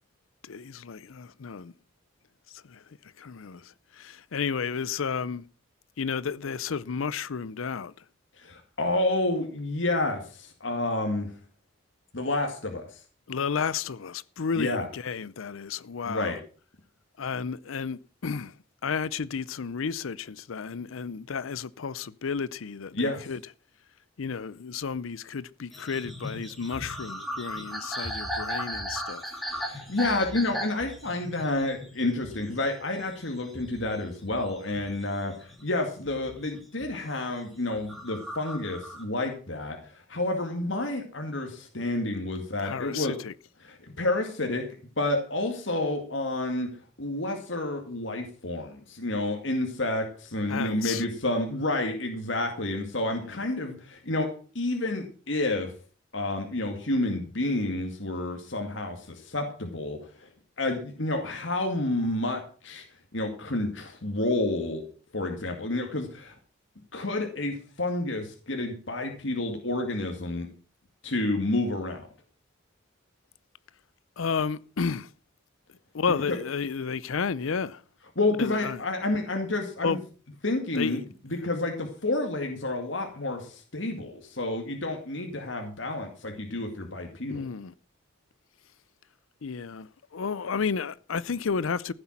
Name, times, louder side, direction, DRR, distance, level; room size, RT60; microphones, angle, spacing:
voice 1, 0.4-1.7 2.5-2.8 3.2-5.4 6.0-7.9 13.3-16.4 17.2-18.5 18.8-23.4 24.2-29.3 42.6-43.3 50.5-51.0 53.2-53.5 74.2-75.1 75.9-77.8 78.4-78.8 79.8-80.0 80.7-81.0 87.3-87.7 89.4-91.9, left 5 dB, 80° left, 0.6 m, -32 dB
voice 2, 8.4-11.3 12.1-13.0 14.6-14.9 16.1-16.4 23.0-23.2 29.5-43.1 43.6-44.6 45.0-46.7 47.0-54.3 54.5-55.7 56.1-60.3 60.6-62.8 63.1-64.8 65.1-66.4 66.9-70.5 71.0-72.1 78.2-80.0 80.4-87.4, left 2 dB, 65° left, 2.2 m, -29 dB
sound 1, 25.7-35.6 36.0-37.1 37.6-39.0, equal, ahead, 2.4 m, -37 dB
15.0 x 8.0 x 5.9 m
head